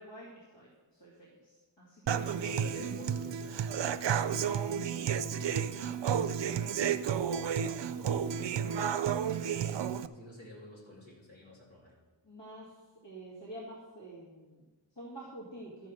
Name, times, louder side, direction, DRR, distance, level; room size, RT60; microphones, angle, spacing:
voice 1, 0.0-2.4 8.7-10.0 12.2-15.9, right 1 dB, 70° left, -6 dB, 2.4 m, -49 dB
voice 2, 2.1-5.9 6.2-8.4 9.3-12.0, left 1 dB, 85° left, -6 dB, 3.3 m, -50 dB
Human voice / Acoustic guitar, 2.1-10.1, right 8 dB, 70° right, 0.5 m, -32 dB
13.0 x 5.2 x 6.3 m, 1.3 s
wide cardioid pair, 45°, 45 cm